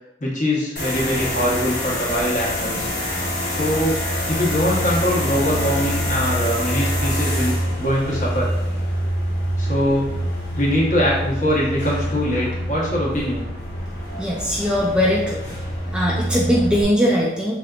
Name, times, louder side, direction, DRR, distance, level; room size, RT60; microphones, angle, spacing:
voice 1, 0.2-2.9 3.5-4.0 4.3-8.5 9.6-10.1 10.6-13.5, equal, 45° left, -4 dB, 1.0 m, -22 dB
sound 1, 0.8-16.8, equal, 65° left, 1.1 m, -25 dB
voice 2, 14.2-15.4 15.9-17.6, equal, 5° right, -3 dB, 0.3 m, -20 dB
3.7 x 3.4 x 2.3 m, 0.89 s
head